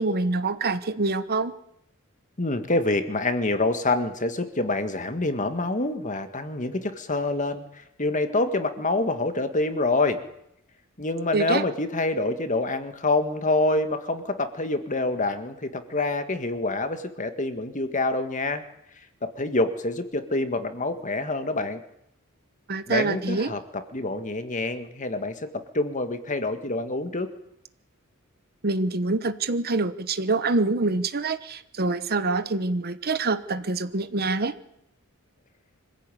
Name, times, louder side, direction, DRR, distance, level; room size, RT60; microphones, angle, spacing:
voice 1, 0.0-1.5 11.3-11.6 22.7-23.5 28.6-34.6, right 3 dB, 45° right, 12 dB, 1.1 m, -25 dB
voice 2, 2.4-10.2 11.0-18.6 19.2-21.8 22.9-27.3, left 2 dB, 35° left, 8 dB, 1.8 m, -26 dB
25.5 x 15.5 x 9.2 m, 0.78 s
head